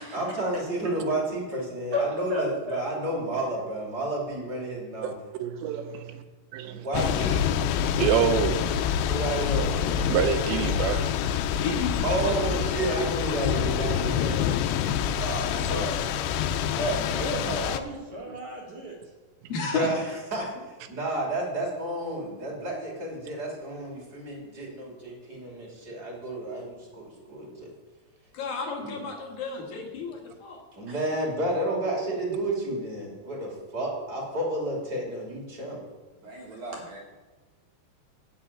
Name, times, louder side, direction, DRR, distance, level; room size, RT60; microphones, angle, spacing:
voice 1, 0.1-5.1 6.6-7.5 9.0-9.7 12.0-14.5 15.5-16.4 16.9-17.4 19.6-20.5 20.9-27.7 28.8-29.0 30.8-35.8, right 1 dB, 30° right, -2 dB, 2.5 m, -31 dB
voice 2, 1.9-2.8 15.1-16.0 16.7-19.0 30.9-31.0 36.2-37.0, equal, 55° right, -2 dB, 2.4 m, -33 dB
voice 3, 5.4-6.2 6.5-6.9 8.0-8.6 10.1-11.1, right 8 dB, 90° right, 9 dB, 3.0 m, -26 dB
Thunder / Rain, 6.9-17.8, left 8 dB, 85° left, 2.7 m, -27 dB
voice 4, 11.6-12.3 19.5-19.9 28.3-30.6, left 4 dB, 65° left, 0 dB, 2.9 m, -32 dB
11.5 x 5.5 x 8.5 m, 1.3 s
omnidirectional pair, 4.9 m